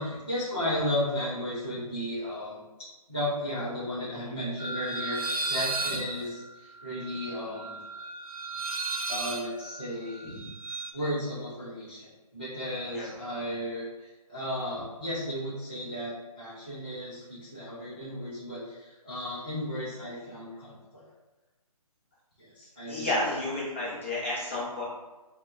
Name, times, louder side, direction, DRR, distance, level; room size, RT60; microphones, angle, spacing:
voice 1, 0.0-2.6 3.1-7.8 9.1-10.5 10.9-21.0 22.4-23.1, left 1 dB, 15° right, -12 dB, 0.5 m, -34 dB
sound 1, 4.6-10.9, right 3 dB, 70° right, 0.4 m, -34 dB
voice 2, 22.9-24.8, left 2 dB, 20° left, -8 dB, 0.7 m, -31 dB
5.6 x 2.2 x 2.5 m, 1.1 s
hypercardioid pair, 180°, 19 cm